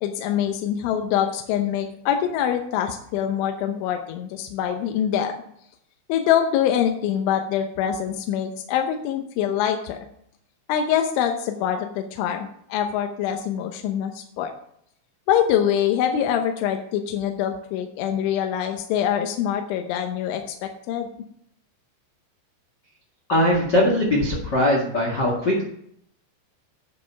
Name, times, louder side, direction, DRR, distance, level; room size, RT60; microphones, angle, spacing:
voice 1, 0.0-5.3 6.1-10.0 10.7-14.5 15.3-21.1, left 9 dB, 80° left, 4 dB, 3.2 m, -24 dB
voice 2, 23.3-25.6, left 1 dB, 60° left, -2 dB, 1.1 m, -20 dB
10.5 x 6.7 x 5.7 m, 0.69 s
omnidirectional pair, 5.5 m